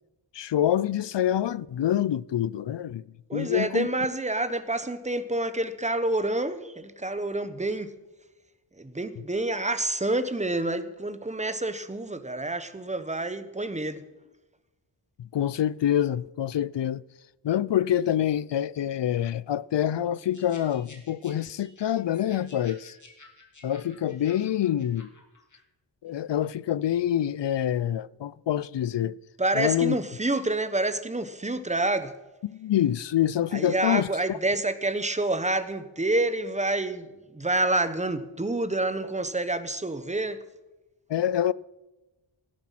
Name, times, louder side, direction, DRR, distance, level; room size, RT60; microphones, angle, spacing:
voice 1, 0.3-3.0 3.3-3.9 15.2-17.0 17.4-23.0 23.6-25.1 26.0-29.2 29.5-30.0 32.4-34.4 41.1-41.5, left 11 dB, 65° left, 0.5 m, -26 dB
voice 2, 3.3-7.9 8.8-14.0 29.4-32.1 33.5-40.4, right 2 dB, 15° right, 1.2 m, -28 dB
sound 1, 20.3-25.6, left 2 dB, 40° left, 2.9 m, -53 dB
17.0 x 11.0 x 5.9 m
wide cardioid pair, 95°, 47 cm